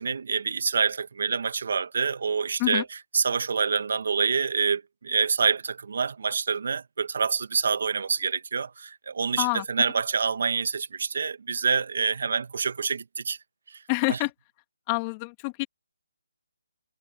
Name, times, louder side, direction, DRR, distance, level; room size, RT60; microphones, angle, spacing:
voice 1, 0.0-13.4 14.1-14.2, right 5 dB, 55° right, 1.8 m, -27 dB
voice 2, 13.9-14.3 14.9-15.6, left 28 dB, 20° left, 2.8 m, -27 dB
figure-of-eight pair, 160°, 0 cm